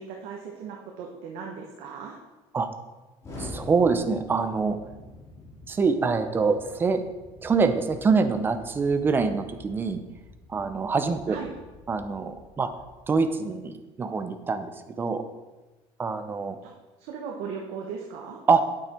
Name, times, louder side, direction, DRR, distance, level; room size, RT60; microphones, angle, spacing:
voice 1, 0.0-2.2 11.3-11.5 16.6-16.7 17.0-18.4, right 6 dB, 75° right, 0 dB, 1.2 m, -37 dB
Explosion, 3.2-13.2, left 2 dB, 25° left, 3.2 m, -46 dB
voice 2, 3.4-4.8 5.7-7.0 7.4-10.0 10.5-11.4 11.9-12.7 13.1-15.2 16.0-16.6 18.5-18.6, right 4 dB, 20° right, 9 dB, 0.6 m, -25 dB
8.7 x 8.6 x 4.4 m, 1.1 s
cardioid pair, 160°, 11 cm